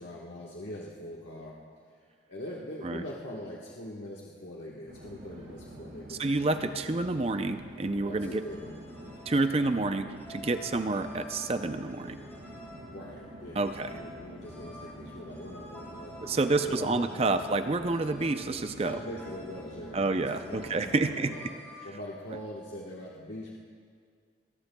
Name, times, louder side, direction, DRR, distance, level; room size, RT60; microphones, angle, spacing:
voice 1, 0.0-1.6 2.3-6.3 8.0-8.7 9.0-9.2 12.9-17.4 18.8-21.6 21.8-23.5, left 1 dB, 75° left, -4 dB, 1.3 m, -42 dB
Conversation / Chatter / Fixed-wing aircraft airplane, 4.9-21.5, right 1 dB, 80° right, 1.9 m, -47 dB
voice 2, 6.1-8.4 9.3-12.2 13.6-13.9 16.2-19.0 19.9-21.3, right 2 dB, 30° right, 8 dB, 0.5 m, -29 dB
sound 1, 8.2-21.9, left 1 dB, 15° left, 4.4 m, -51 dB
22.5 x 18.5 x 2.3 m, 2.1 s
head